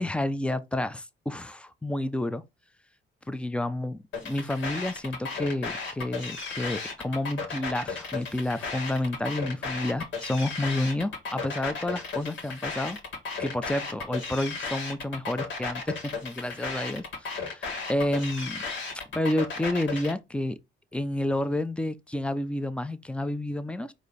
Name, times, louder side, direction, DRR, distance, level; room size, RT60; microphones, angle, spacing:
voice 1, 0.0-2.4 3.3-13.0 13.4-18.6 19.1-20.6 20.9-23.9, left 1 dB, 5° left, 0.5 m, -30 dB
sound 1, 4.1-20.1, left 4 dB, 70° left, 1.7 m, -35 dB
4.8 x 2.7 x 4.0 m
cardioid pair, 90°, 20 cm